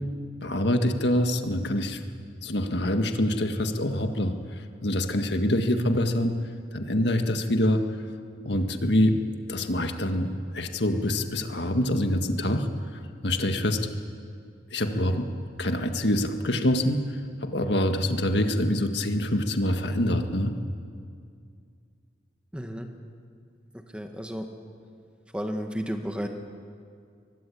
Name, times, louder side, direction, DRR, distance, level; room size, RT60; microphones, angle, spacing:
voice 1, 0.4-2.0 2.4-6.4 6.7-7.8 8.5-9.2 9.5-13.8 14.7-15.3 15.6-20.5, left 1 dB, 70° left, 6 dB, 1.8 m, -25 dB
voice 2, 22.5-22.9 23.9-24.5 25.3-26.3, equal, 5° right, 4 dB, 1.7 m, -32 dB
24.0 x 20.5 x 8.5 m, 2.3 s
head